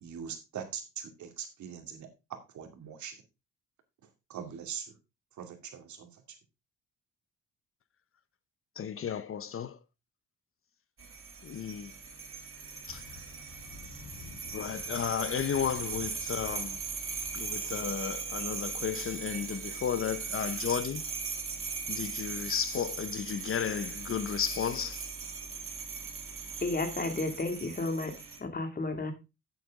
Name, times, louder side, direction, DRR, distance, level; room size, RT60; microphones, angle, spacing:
voice 1, 0.0-3.2 4.3-4.9 5.4-6.1, right 8 dB, 70° right, 2.4 m, -42 dB
voice 2, 8.8-9.8 11.4-11.9 12.9-13.0 14.5-16.8 17.3-21.0 21.9-25.1, left 8 dB, 45° left, 0.7 m, -33 dB
sound 1, 11.0-28.4, right 5 dB, 45° right, 2.5 m, -39 dB
sound 2, 12.9-17.9, left 4 dB, 75° left, 4.0 m, -51 dB
voice 3, 26.6-29.1, left 3 dB, 30° left, 2.3 m, -32 dB
9.9 x 7.9 x 3.6 m
cardioid pair, 90°, 30 cm